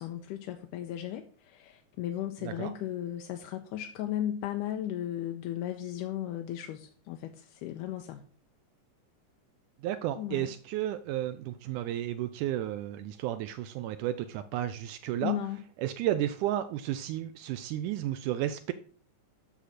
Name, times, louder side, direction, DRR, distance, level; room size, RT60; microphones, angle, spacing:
voice 1, 0.0-8.2 10.2-10.5 15.2-15.6, left 12 dB, 85° left, 5 dB, 2.2 m, -35 dB
voice 2, 2.4-2.7 9.8-15.4 15.8-18.7, right 12 dB, 80° right, 11 dB, 1.9 m, -32 dB
10.0 x 6.3 x 4.1 m, 0.42 s
omnidirectional pair, 3.8 m